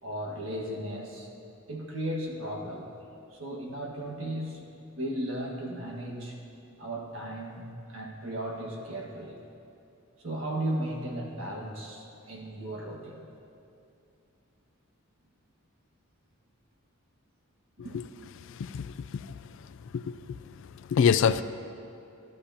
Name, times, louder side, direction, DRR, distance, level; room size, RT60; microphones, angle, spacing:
voice 1, 0.0-1.3 1.7-2.9 3.3-6.4 6.8-9.4 10.2-13.3 17.8-18.0, right 1 dB, 75° right, -1 dB, 1.7 m, -36 dB
voice 2, 18.4-19.4 19.9-21.4, left 7 dB, 65° left, 12 dB, 0.3 m, -27 dB
14.5 x 11.5 x 2.8 m, 2.6 s
head